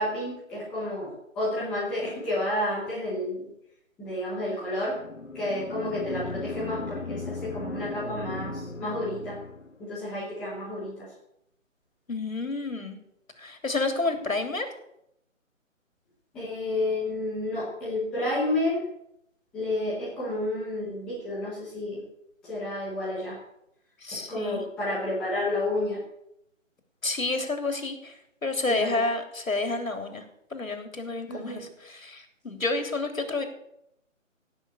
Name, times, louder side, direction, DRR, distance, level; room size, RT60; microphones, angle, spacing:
voice 1, 0.0-3.5 4.0-5.0 5.3-9.4 9.8-11.1 16.3-18.8 19.5-22.0 22.4-23.4 24.3-26.0 28.7-29.0 31.3-31.7, left 1 dB, ahead, -7 dB, 0.8 m, -30 dB
sound 1, 4.9-9.8, left 3 dB, 70° left, 1.5 m, -37 dB
voice 2, 12.1-13.0 13.4-14.7 24.0-24.6 27.0-28.2 28.4-30.2 30.5-33.4, left 3 dB, 85° left, 6 dB, 3.3 m, -29 dB
16.5 x 6.2 x 8.2 m, 0.78 s
figure-of-eight pair, 155°, 40 cm